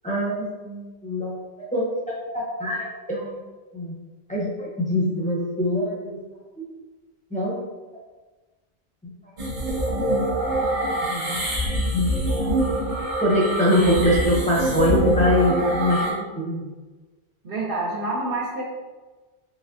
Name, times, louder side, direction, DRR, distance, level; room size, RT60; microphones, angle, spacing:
voice 1, 0.0-1.4 1.7-1.8 2.3-3.3 3.7-3.9 4.3-6.2 6.6-6.7 7.3-7.6 9.8-10.0 11.1-11.6 11.9-12.5 13.2-16.7, left 1 dB, 10° left, -6 dB, 0.7 m, -23 dB
sound 1, 9.4-16.1, right 1 dB, 85° right, 1.2 m, -24 dB
voice 2, 17.4-18.6, right 2 dB, 60° right, -6 dB, 0.8 m, -27 dB
4.1 x 3.1 x 2.5 m, 1.2 s
omnidirectional pair, 1.1 m